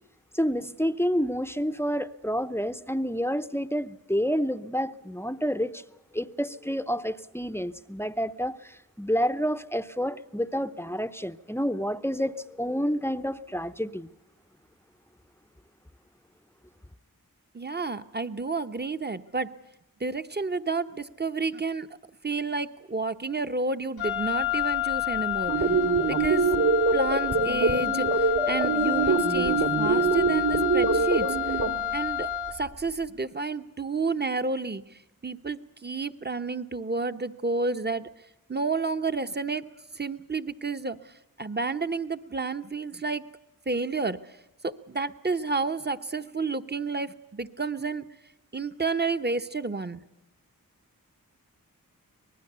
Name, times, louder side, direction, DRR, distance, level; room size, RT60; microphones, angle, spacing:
voice 1, 0.3-5.8 6.1-14.1, equal, 5° left, 0.7 m, -29 dB
voice 2, 17.5-19.6 20.0-21.9 22.2-25.7 26.1-26.5 26.9-31.6 31.9-38.1 38.5-39.7 39.9-43.3 43.7-44.4 44.6-48.1 48.5-50.0, right 3 dB, 30° right, 1.0 m, -30 dB
Wind instrument woodwind instrument, 24.0-32.7, left 11 dB, 80° left, 1.4 m, -29 dB
sound 1, 25.5-31.7, right 4 dB, 65° right, 2.3 m, -24 dB
24.5 x 19.5 x 6.8 m
wide cardioid pair, 55°, 36 cm